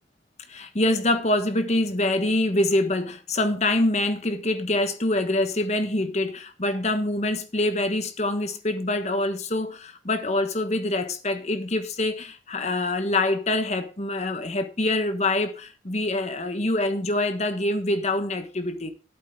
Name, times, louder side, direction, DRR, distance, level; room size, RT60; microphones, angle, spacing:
voice 1, 0.5-18.9, left 2 dB, 35° left, 1.3 m, -25 dB
11.5 x 8.4 x 3.7 m
head